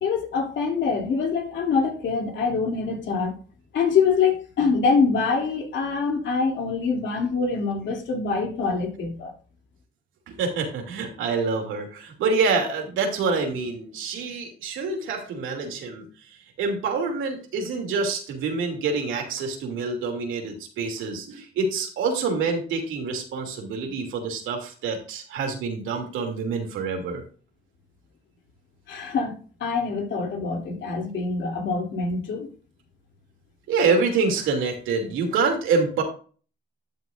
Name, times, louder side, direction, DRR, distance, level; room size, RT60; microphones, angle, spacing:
voice 1, 0.0-3.3 3.7-9.3 28.9-32.5, left 5 dB, 70° left, 3.0 m, -25 dB
voice 2, 10.3-16.0 16.6-27.2 33.7-36.0, right 4 dB, 85° right, 2.8 m, -26 dB
12.0 x 7.8 x 2.6 m
cardioid pair, 90°, 20 cm